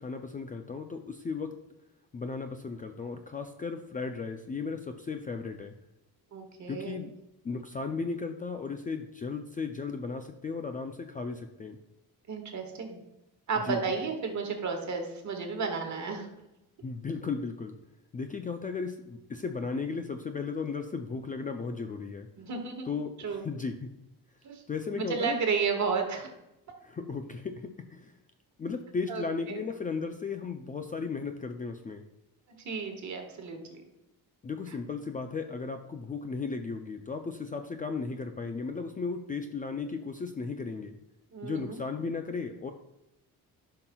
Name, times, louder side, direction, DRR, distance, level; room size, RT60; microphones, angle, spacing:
voice 1, 0.0-1.5 2.1-5.7 6.7-7.1 7.4-11.8 13.6-13.8 16.8-17.8 18.1-22.3 22.8-23.9 24.7-25.4 26.8-28.2 28.6-32.0 34.4-41.0 41.4-42.7, left 4 dB, 20° left, 6 dB, 0.4 m, -35 dB
voice 2, 6.3-7.0 12.3-13.0 13.5-16.3 22.4-22.9 23.2-23.4 24.4-24.6 24.9-26.3 29.1-29.6 32.6-33.8 41.3-41.8, right 5 dB, 45° right, 3 dB, 1.5 m, -32 dB
11.0 x 5.8 x 2.3 m, 0.93 s
cardioid pair, 120°, 38 cm